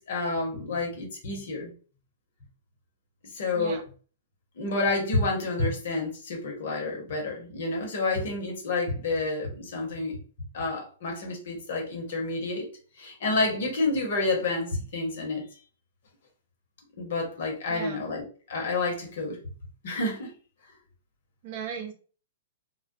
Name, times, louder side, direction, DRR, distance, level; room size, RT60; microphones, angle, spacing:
voice 1, 0.0-1.7 3.3-3.8 4.6-10.2 10.5-12.7 13.0-15.4 17.0-19.4 19.8-20.3, left 3 dB, 60° left, 1 dB, 1.0 m, -29 dB
voice 2, 17.7-18.0 21.4-21.9, right 7 dB, 50° right, 3 dB, 0.6 m, -36 dB
2.3 x 2.1 x 2.6 m, 0.39 s
hypercardioid pair, 115°, 0 cm